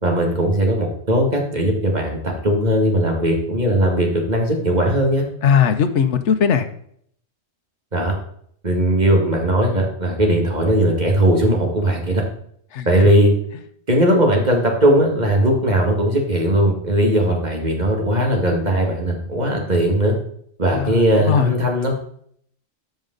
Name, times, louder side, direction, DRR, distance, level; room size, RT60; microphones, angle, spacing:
voice 1, 0.0-5.3 7.9-8.1 8.6-12.2 12.9-13.3 13.9-20.2 20.6-22.0, right 1 dB, 40° right, 1 dB, 2.1 m, -18 dB
voice 2, 5.4-6.7 12.7-12.9 20.7-21.5, left 7 dB, 75° left, 9 dB, 1.1 m, -18 dB
13.0 x 5.3 x 3.9 m, 0.64 s
omnidirectional pair, 1.2 m